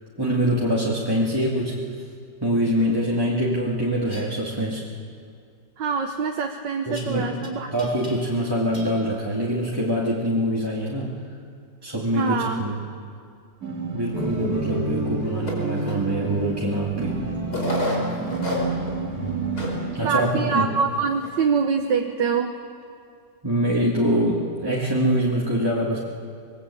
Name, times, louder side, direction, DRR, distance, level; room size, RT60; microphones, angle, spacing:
voice 1, 0.2-1.8 2.4-4.9 6.9-7.4 7.7-11.2 11.8-12.8 13.9-17.2 19.9-20.7 23.4-26.0, equal, 15° right, -4 dB, 2.3 m, -24 dB
sound 1, 4.0-4.3 7.0-7.5 7.8-8.5 8.7-9.0, left 1 dB, 25° left, 3.5 m, -43 dB
voice 2, 5.8-7.7 12.1-12.6 20.0-22.5, right 5 dB, 85° right, 4 dB, 1.8 m, -24 dB
sound 2, 13.6-21.2, right 3 dB, 55° right, 2.9 m, -29 dB
sound 3, 15.5-15.9 16.7-16.8 17.5-18.9 19.3-19.4 19.6-19.8 20.3-20.4 21.0-21.3, left 1 dB, 65° left, 5.6 m, -28 dB
25.0 x 21.5 x 8.5 m, 2.3 s
omnidirectional pair, 1.9 m